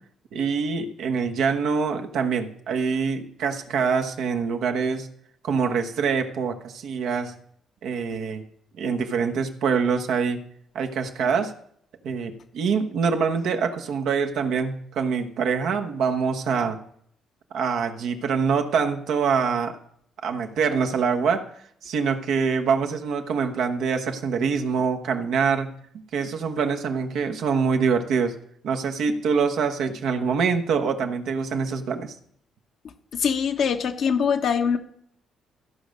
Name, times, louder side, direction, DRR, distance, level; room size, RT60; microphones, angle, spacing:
voice 1, 0.3-5.1 5.4-7.3 7.8-8.4 8.8-10.4 10.7-11.5 12.0-16.8 17.5-19.8 20.2-21.5 21.8-25.7 26.1-28.4 28.6-32.1, right 5 dB, 70° right, 5 dB, 1.1 m, -25 dB
voice 2, 33.1-34.8, left 7 dB, 65° left, 5 dB, 1.1 m, -23 dB
14.5 x 5.1 x 6.4 m, 0.67 s
supercardioid pair, 60°, 0 cm